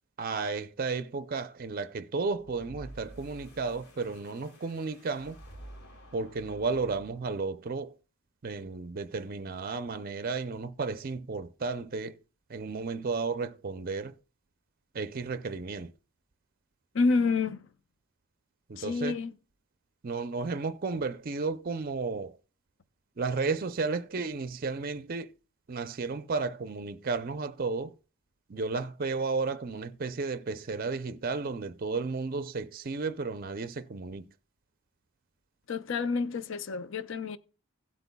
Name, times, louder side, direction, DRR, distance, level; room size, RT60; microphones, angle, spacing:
voice 1, 0.2-5.4 6.1-8.0 8.4-12.2 12.5-14.2 14.9-15.9 18.7-19.2 20.0-22.4 23.2-25.3 25.7-28.0 28.5-34.3, right 4 dB, 40° right, 0.5 m, -33 dB
sound 1, 2.4-7.5, right 1 dB, 85° left, 3.2 m, -50 dB
voice 2, 16.9-17.7 18.8-19.3 35.7-37.4, left 4 dB, 55° left, 0.6 m, -28 dB
16.5 x 8.0 x 2.3 m
head